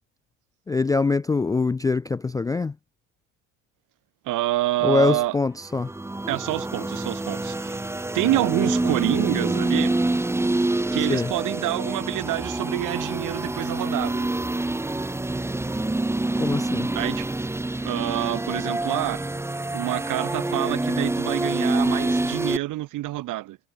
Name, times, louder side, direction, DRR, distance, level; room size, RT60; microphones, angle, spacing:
voice 1, 0.7-2.7 4.8-5.9 11.1-11.3 16.4-16.9, left 4 dB, 10° left, 0.3 m, -23 dB
voice 2, 4.2-5.4 6.3-7.8 8.1-9.9 10.9-14.3 16.9-17.3 17.8-19.2 19.7-23.6, right 17 dB, 60° right, 1.3 m, -27 dB
sound 1, 5.7-22.6, right 2 dB, 5° right, 1.0 m, -26 dB
supercardioid pair, 80°, 36 cm